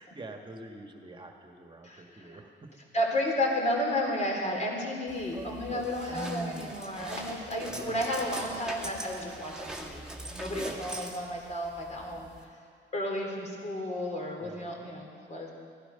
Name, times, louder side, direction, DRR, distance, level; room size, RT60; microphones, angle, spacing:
voice 1, 0.0-2.5 4.8-5.0 5.3-6.7 7.5-8.7 10.6-10.9 14.4-14.9, right 2 dB, 25° right, 3 dB, 1.7 m, -44 dB
voice 2, 1.8-2.4 2.9-10.0 10.3-12.5 12.9-15.5, left 1 dB, 35° left, 0 dB, 3.2 m, -32 dB
sound 1, 5.1-12.4, right 1 dB, 5° right, 1.8 m, -42 dB
16.0 x 12.0 x 5.7 m, 2.3 s
cardioid pair, 90°, 20 cm